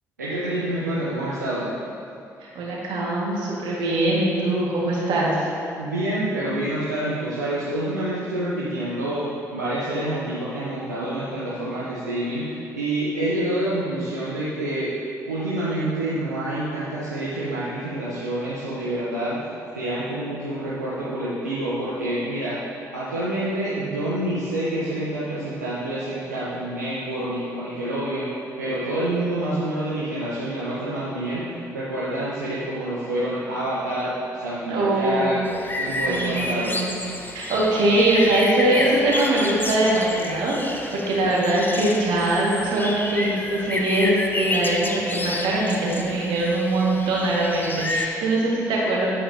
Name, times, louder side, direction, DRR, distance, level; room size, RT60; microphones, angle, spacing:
voice 1, 0.2-1.7 5.8-14.9 15.3-19.3 19.8-22.6 22.9-28.3 28.6-31.5 31.7-35.4 35.7-36.8, right 1 dB, 90° right, -9 dB, 0.8 m, -27 dB
voice 2, 2.4-5.5 34.7-35.3 36.0-36.9 37.3-49.1, right 1 dB, 60° right, -4 dB, 1.8 m, -22 dB
sound 1, 35.5-48.1, left 2 dB, 20° left, 0.8 m, -31 dB
8.6 x 8.5 x 2.8 m, 2.7 s
figure-of-eight pair, 45°, 9 cm